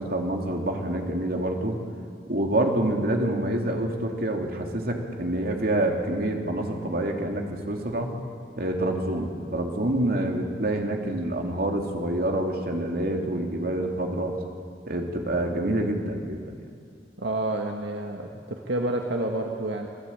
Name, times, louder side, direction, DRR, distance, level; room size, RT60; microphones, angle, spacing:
voice 1, 0.0-1.8 2.3-8.1 8.6-14.3 14.9-16.6, right 1 dB, 55° right, 2 dB, 3.1 m, -27 dB
voice 2, 17.2-19.9, right 1 dB, 80° right, 2 dB, 1.8 m, -29 dB
26.5 x 18.5 x 8.9 m, 2.2 s
head